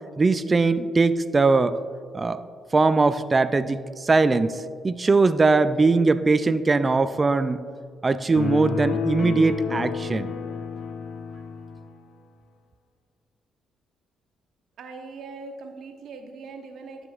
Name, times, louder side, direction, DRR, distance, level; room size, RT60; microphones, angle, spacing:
voice 1, 0.2-1.8 2.1-2.4 2.7-7.6 8.0-10.3, right 3 dB, 30° right, 13 dB, 0.3 m, -21 dB
sound 1, 8.4-11.9, left 6 dB, 90° left, 0.6 m, -30 dB
voice 2, 14.8-17.1, right 4 dB, 70° right, 4 dB, 0.9 m, -40 dB
11.0 x 7.7 x 2.4 m, 2.1 s
cardioid pair, 90°, 0 cm